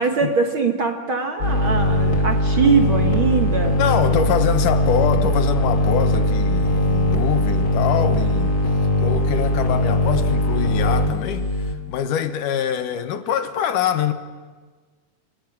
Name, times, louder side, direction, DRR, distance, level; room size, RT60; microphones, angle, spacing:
voice 1, 0.0-3.8, right 5 dB, 50° right, 1.7 m, -21 dB
sound 1, 1.4-11.7, left 1 dB, 30° left, 2.8 m, -20 dB
voice 2, 3.8-8.6 9.0-11.5 11.9-14.1, left 9 dB, 80° left, 2.7 m, -24 dB
29.5 x 28.0 x 6.1 m
omnidirectional pair, 3.8 m